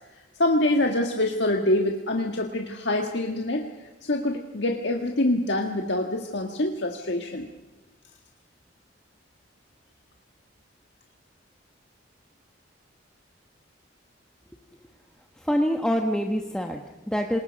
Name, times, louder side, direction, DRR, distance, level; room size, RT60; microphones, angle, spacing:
voice 1, 0.4-3.7 4.0-7.5, left 1 dB, 65° left, 3 dB, 1.7 m, -25 dB
voice 2, 15.4-17.4, equal, 5° left, 3 dB, 1.2 m, -26 dB
27.5 x 20.5 x 5.3 m, 1.1 s
head